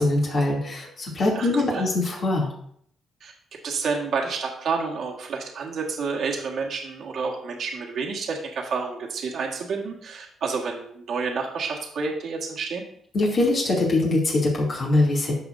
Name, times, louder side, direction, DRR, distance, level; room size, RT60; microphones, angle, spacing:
voice 1, 0.0-2.5 13.1-15.3, left 2 dB, 50° left, -4 dB, 2.8 m, -22 dB
voice 2, 1.3-1.8 3.2-3.3 3.6-12.8, right 4 dB, 65° right, 0 dB, 1.7 m, -29 dB
14.0 x 4.9 x 2.7 m, 0.66 s
cardioid pair, 90°, 0 cm